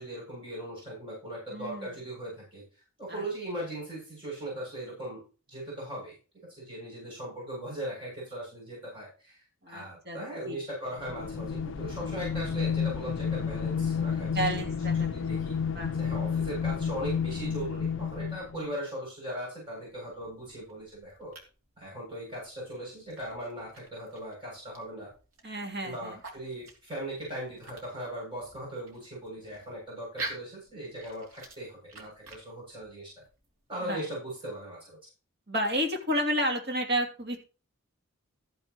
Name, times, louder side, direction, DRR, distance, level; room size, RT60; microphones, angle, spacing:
voice 1, 0.0-2.6 3.0-5.2 5.5-6.2 6.5-14.5 14.8-15.6 16.0-21.3 21.8-25.1 25.8-33.2 33.7-35.0, right 1 dB, 25° right, -5 dB, 7.5 m, -39 dB
voice 2, 1.5-1.9 3.1-3.2 9.6-10.2 10.5-10.6 14.3-15.1 15.7-15.9 25.4-26.2 33.8-34.0 35.5-37.4, equal, 45° right, 2 dB, 2.9 m, -31 dB
sound 1, 11.0-18.7, left 6 dB, 55° left, 0.4 m, -31 dB
sound 2, 19.6-33.7, right 2 dB, 70° right, 3.1 m, -48 dB
14.0 x 9.4 x 3.1 m, 0.35 s
head